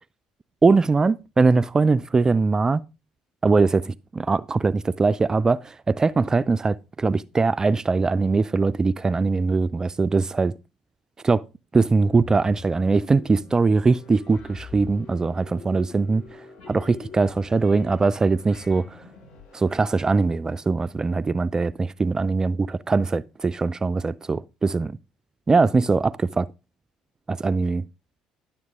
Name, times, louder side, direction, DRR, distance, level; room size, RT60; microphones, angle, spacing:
voice 1, 0.6-2.8 3.4-10.5 11.2-11.4 11.7-16.2 16.7-19.0 19.5-24.9 25.5-26.5 27.3-27.8, right 4 dB, 25° right, 0.4 m, -21 dB
sound 1, 12.0-19.8, left 4 dB, 60° left, 2.3 m, -44 dB
10.5 x 7.2 x 3.5 m
hypercardioid pair, 55°, 3 cm